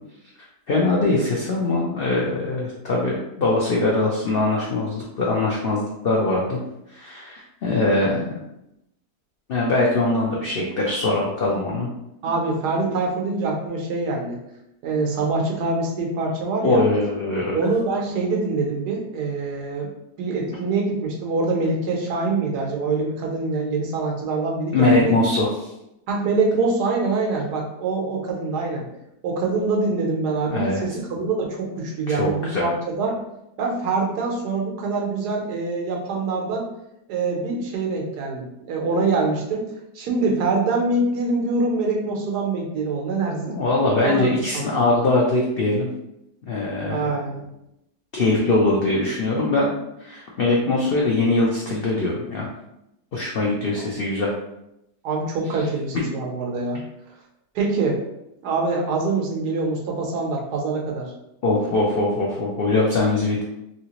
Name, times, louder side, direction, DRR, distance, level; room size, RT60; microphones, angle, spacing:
voice 1, 0.7-6.6 6.9-8.4 9.5-11.9 16.6-17.6 24.7-25.7 30.5-30.8 32.1-32.7 43.5-45.9 46.4-47.1 48.1-49.7 50.0-52.5 53.1-54.3 61.4-63.4, left 2 dB, 80° left, -3 dB, 0.5 m, -22 dB
voice 2, 12.2-14.4 14.8-16.8 17.5-19.9 20.2-25.1 26.1-28.8 29.2-33.2 33.6-36.6 37.1-39.6 39.9-43.6 44.0-44.3 44.5-44.7 46.9-47.5 55.0-56.8 57.5-58.0 58.4-61.1, right 3 dB, 85° right, 0 dB, 1.3 m, -24 dB
3.2 x 2.8 x 2.9 m, 0.84 s
omnidirectional pair, 1.7 m